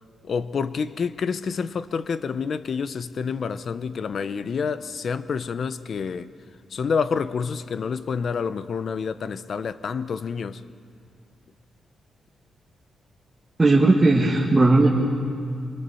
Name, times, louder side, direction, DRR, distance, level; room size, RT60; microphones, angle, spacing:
voice 1, 0.2-6.3 6.7-10.6, left 5 dB, 45° left, 0.7 m, -28 dB
voice 2, 13.6-14.9, right 2 dB, 15° right, 1.8 m, -17 dB
26.5 x 24.5 x 7.0 m
wide cardioid pair, 175°, 0 cm